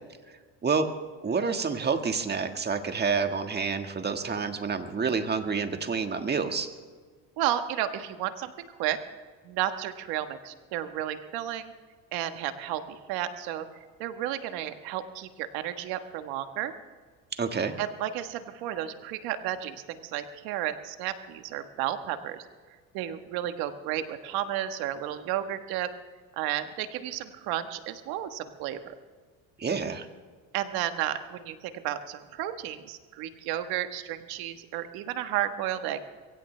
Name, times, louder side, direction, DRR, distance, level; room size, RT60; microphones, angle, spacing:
voice 1, 1.2-6.7 17.4-17.7 29.6-30.1, right 5 dB, 25° right, 7 dB, 1.6 m, -28 dB
voice 2, 7.4-9.0 9.4-11.7 12.1-13.7 14.0-16.7 17.8-22.4 22.9-25.9 26.4-28.9 30.5-36.0, right 12 dB, 80° right, 9 dB, 1.4 m, -32 dB
22.5 x 16.5 x 3.3 m, 1.5 s
supercardioid pair, 95°, 37 cm